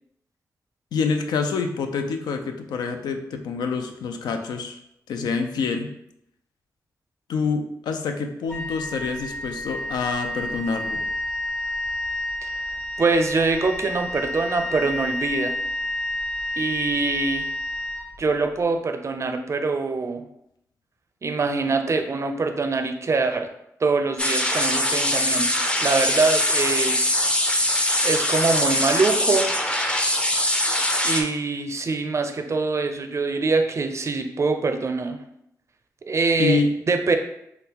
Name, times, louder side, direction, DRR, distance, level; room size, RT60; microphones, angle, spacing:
voice 1, 0.9-4.8 5.1-5.9 7.3-11.0 36.4-36.7, left 4 dB, 85° left, 5 dB, 0.3 m, -26 dB
Wind instrument woodwind instrument, 8.5-18.6, left 1 dB, 40° left, 0.9 m, -30 dB
voice 2, 13.0-15.5 16.6-17.5 18.2-20.3 21.2-23.5 23.8-25.5 25.8-27.1 28.0-29.5 31.0-35.2 36.0-36.6 36.9-37.2, right 3 dB, 45° right, 7 dB, 0.4 m, -24 dB
sound 1, 24.2-31.2, left 1 dB, 15° left, 0.5 m, -22 dB
3.7 x 2.2 x 2.8 m, 0.77 s
cardioid pair, 50°, 7 cm